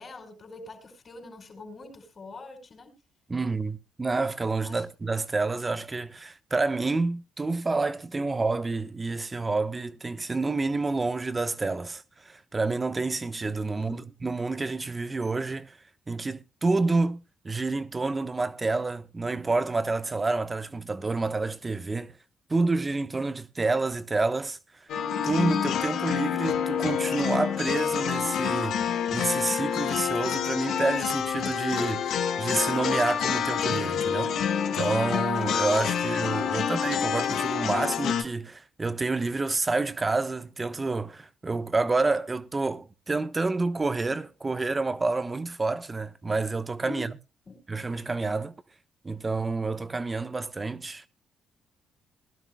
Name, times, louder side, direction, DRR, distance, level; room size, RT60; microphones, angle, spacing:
voice 1, 0.0-2.9 4.6-4.8 13.7-14.1 35.9-36.0 36.4-36.8 46.8-47.1 47.5-47.6, left 2 dB, 40° left, 4.6 m, -44 dB
voice 2, 3.3-15.8 16.1-22.1 22.5-24.6 25.2-28.8 29.1-34.3 34.8-47.1 47.7-48.5 49.0-51.0, right 3 dB, 25° right, 1.1 m, -28 dB
sound 1, 24.9-38.2, left 8 dB, 75° left, 1.6 m, -27 dB
20.0 x 12.0 x 2.3 m
cardioid pair, 90°, 0 cm